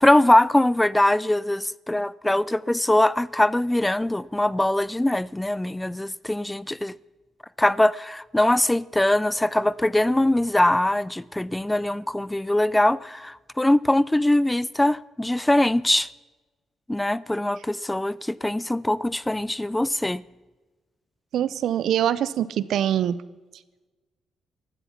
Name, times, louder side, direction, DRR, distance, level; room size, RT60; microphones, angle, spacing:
voice 1, 0.0-6.9 7.6-16.1 16.9-20.2, left 1 dB, 10° left, 0.4 m, -22 dB
voice 2, 21.3-23.2, right 10 dB, 70° right, 0.7 m, -23 dB
15.0 x 12.5 x 5.8 m
cardioid pair, 90°, 0 cm